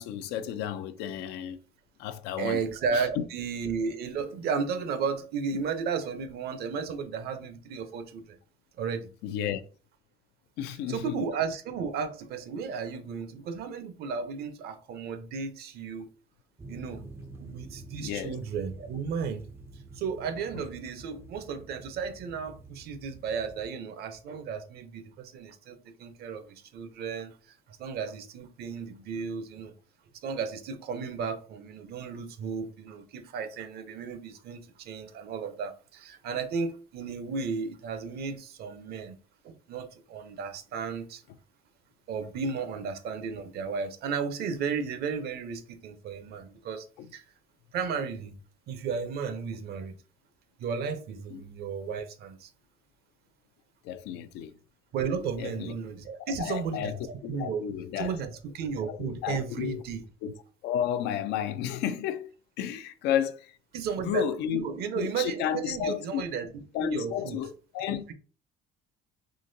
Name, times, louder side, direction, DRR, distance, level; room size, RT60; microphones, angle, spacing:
voice 1, 0.0-1.6 2.0-2.6 2.9-3.2 9.2-9.6 10.6-11.2 18.0-18.4 47.0-47.1 51.3-51.4 53.8-54.5 55.4-55.7 56.2-57.0 57.2-58.1 58.9-59.8 60.2-60.3 60.6-62.3 62.6-63.5 64.0-64.7 64.9-66.2 66.7-68.1, left 9 dB, 90° left, 0.4 m, -32 dB
voice 2, 2.4-8.4 8.8-9.1 10.9-16.1 16.7-17.0 17.4-19.4 19.9-27.4 27.7-29.7 30.2-39.1 39.4-41.2 42.1-46.9 47.1-47.2 47.7-48.4 48.7-49.9 50.6-52.5 54.9-57.6 58.0-60.0 63.7-66.5 66.8-67.4 67.9-68.1, right 5 dB, 70° right, 0.7 m, -34 dB
sound 1, 16.6-23.6, right 2 dB, 15° right, 0.3 m, -48 dB
3.8 x 2.9 x 2.6 m
cardioid pair, 110°, 17 cm